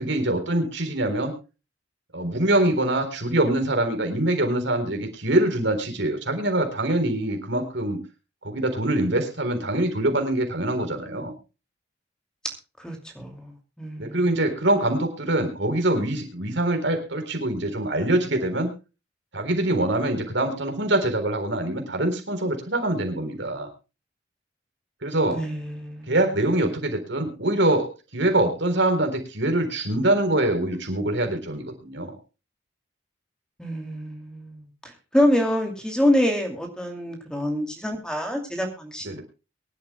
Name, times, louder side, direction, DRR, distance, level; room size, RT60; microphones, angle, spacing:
voice 1, 0.0-1.3 2.1-8.0 8.4-11.3 14.0-18.7 19.3-23.7 25.0-25.4 26.1-27.9 28.1-32.1 39.0-39.2, right 1 dB, 70° right, 5 dB, 3.8 m, -24 dB
voice 2, 12.8-13.5 13.8-14.3 25.3-26.1 33.6-34.7 35.1-39.2, left 1 dB, 5° left, 3 dB, 2.5 m, -26 dB
23.5 x 12.0 x 2.2 m, 0.30 s
head